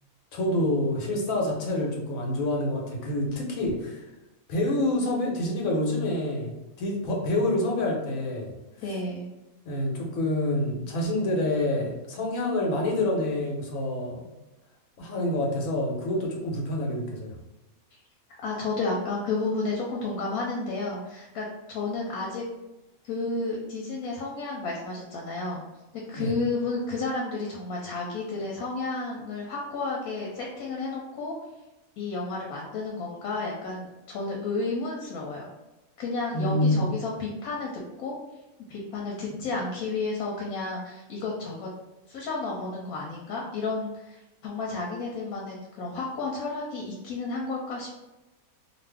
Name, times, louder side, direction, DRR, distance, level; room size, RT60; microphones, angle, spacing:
voice 1, 0.3-4.0 4.5-8.5 9.6-14.2 15.0-17.3 26.1-26.3 36.3-36.9, left 1 dB, 70° left, -1 dB, 1.2 m, -27 dB
voice 2, 8.8-9.3 18.4-22.4 23.0-25.6 26.1-31.3 32.0-35.5 36.0-38.2 38.7-41.7 42.1-47.9, left 3 dB, 90° left, -2 dB, 1.1 m, -32 dB
2.5 x 2.5 x 3.3 m, 1.0 s
omnidirectional pair, 1.5 m